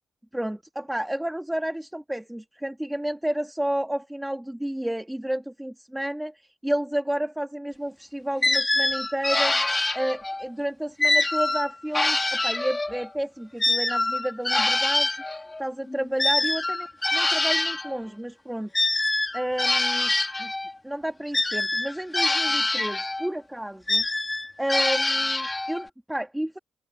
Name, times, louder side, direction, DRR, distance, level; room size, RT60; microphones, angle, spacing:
voice 1, 0.3-9.5 9.9-18.7 19.3-20.1 20.4-20.5 20.8-24.0 24.6-26.6, right 1 dB, 5° right, 2.7 m, -31 dB
sound 1, 8.4-10.5 11.0-13.1 13.6-17.9 18.7-20.7 21.3-23.3 23.9-25.9, left 2 dB, 15° left, 3.2 m, -25 dB
open air
cardioid pair, 90°, 0 cm